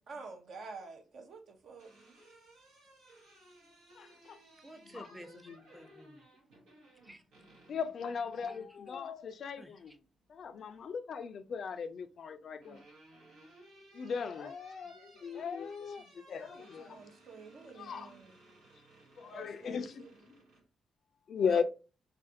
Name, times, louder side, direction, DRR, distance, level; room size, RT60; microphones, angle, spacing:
voice 1, 0.1-1.9 16.4-18.4 19.3-20.2 21.4-21.6, right 4 dB, 65° right, 0.7 m, -49 dB
sound 1, 1.6-8.7 10.2-10.9 12.1-20.6, right 2 dB, 90° right, 1.0 m, -59 dB
voice 2, 4.0-4.4 4.9-5.1 5.5-5.6 7.7-9.9 10.3-12.8 13.9-17.0 17.8-18.1 19.2-20.0 21.3-21.6, left 6 dB, 60° left, 0.3 m, -37 dB
voice 3, 4.6-6.3 7.0-7.2 8.4-8.6 9.6-10.0, equal, 10° right, 0.5 m, -53 dB
2.5 x 2.4 x 2.6 m
supercardioid pair, 60°, 0 cm